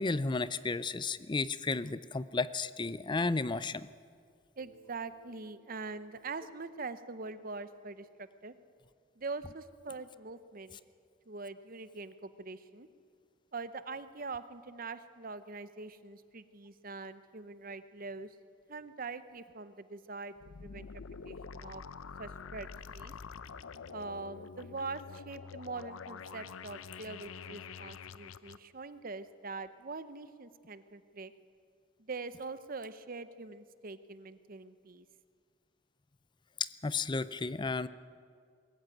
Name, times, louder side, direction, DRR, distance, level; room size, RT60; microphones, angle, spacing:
voice 1, 0.0-3.9 36.6-37.9, left 3 dB, 25° left, 16 dB, 0.5 m, -33 dB
voice 2, 4.6-8.5 9.2-10.8 11.3-12.9 13.5-18.4 18.7-20.3 20.6-20.9 21.2-21.8 22.2-23.1 23.9-31.3 32.0-35.1, right 3 dB, 45° right, 13 dB, 0.8 m, -43 dB
Bass guitar, 4.6-9.0, right 6 dB, 60° right, 4.4 m, -67 dB
sound 1, 20.4-28.6, left 5 dB, 85° left, 0.6 m, -46 dB
22.5 x 14.5 x 9.1 m, 2.2 s
head